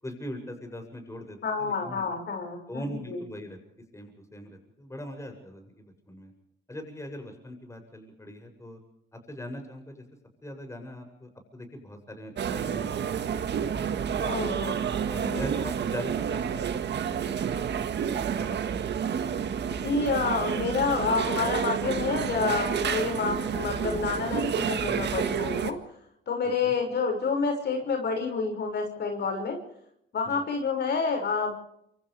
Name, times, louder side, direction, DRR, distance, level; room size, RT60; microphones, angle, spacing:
voice 1, 0.0-2.0 2.7-3.6 3.9-6.3 6.7-8.8 9.1-10.0 10.4-14.5 15.1-16.6 16.9-18.9 19.3-19.9 26.6-26.7 30.2-30.4, left 1 dB, 15° left, 4 dB, 7.7 m, -41 dB
voice 2, 1.4-2.8 3.1-3.2 14.2-14.8 15.2-15.4 19.7-25.8 26.3-29.6 30.1-31.5, left 5 dB, 60° left, 3 dB, 6.2 m, -28 dB
sound 1, 12.4-25.7, right 8 dB, 60° right, 1.8 m, -29 dB
28.5 x 26.5 x 3.5 m, 0.74 s
cardioid pair, 90°, 20 cm